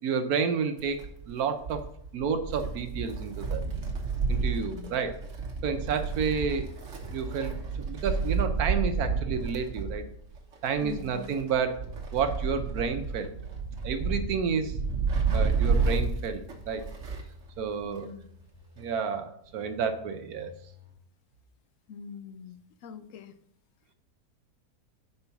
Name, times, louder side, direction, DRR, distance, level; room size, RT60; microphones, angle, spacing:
voice 1, 0.0-1.0 1.3-1.8 2.1-3.6 4.3-5.1 5.6-6.7 7.1-7.5 7.8-10.0 10.6-11.7 12.1-13.3 13.8-14.7 15.3-16.9 17.6-18.1 18.8-20.5, right 6 dB, 70° right, 8 dB, 1.1 m, -30 dB
Wind, 0.8-17.4 17.7-17.8 18.8-18.9, right 4 dB, 50° right, 1.4 m, -31 dB
voice 2, 4.5-4.9 10.8-11.3 17.8-18.3 21.9-23.3, left 7 dB, 65° left, 10 dB, 0.9 m, -43 dB
sound 1, 11.3-11.9 12.2-14.3 14.6-16.7 17.0-19.1 19.4-20.9, left 4 dB, 30° left, 2.0 m, -54 dB
5.4 x 4.5 x 5.7 m, 0.69 s
omnidirectional pair, 1.7 m